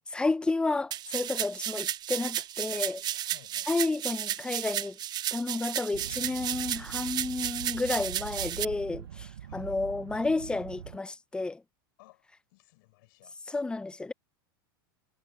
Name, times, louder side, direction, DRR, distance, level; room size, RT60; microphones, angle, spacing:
voice 1, 0.1-3.0 3.7-5.0 5.3-11.6 13.5-14.1, left 3 dB, 10° left, 0.4 m, -31 dB
sound 1, 0.9-8.6, right 11 dB, 35° right, 1.0 m, -33 dB
voice 2, 3.3-3.9 9.4-9.8 12.0-13.4, left 23 dB, 65° left, 6.5 m, -58 dB
sound 2, 5.9-11.0, right 10 dB, 85° right, 0.7 m, -43 dB
hypercardioid pair, 105°, 12 cm